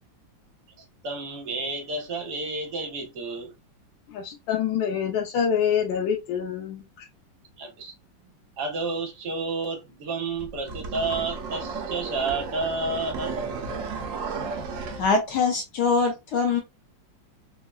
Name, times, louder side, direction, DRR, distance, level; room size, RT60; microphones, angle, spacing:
voice 1, 0.8-3.5 7.6-7.9 8.6-13.4, right 3 dB, 65° right, 1.3 m, -30 dB
voice 2, 4.1-7.1, left 8 dB, 85° left, 1.4 m, -26 dB
sound 1, 10.4-15.1, right 4 dB, 80° right, 0.7 m, -33 dB
voice 3, 15.0-16.6, left 4 dB, 65° left, 1.1 m, -23 dB
3.6 x 2.0 x 2.2 m
omnidirectional pair, 2.1 m